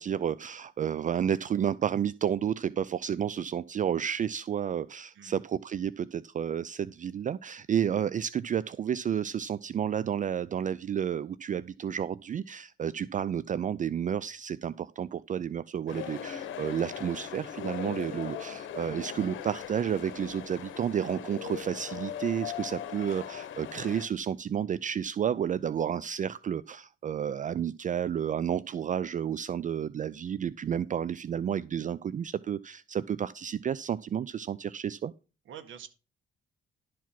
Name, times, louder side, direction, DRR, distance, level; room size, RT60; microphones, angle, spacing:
voice 1, 0.0-35.1, right 8 dB, 40° right, 0.4 m, -31 dB
sound 1, 15.9-24.1, left 10 dB, 75° left, 1.2 m, -39 dB
voice 2, 35.4-35.9, right 9 dB, 75° right, 1.7 m, -46 dB
11.5 x 4.6 x 5.9 m
cardioid pair, 90°, 20 cm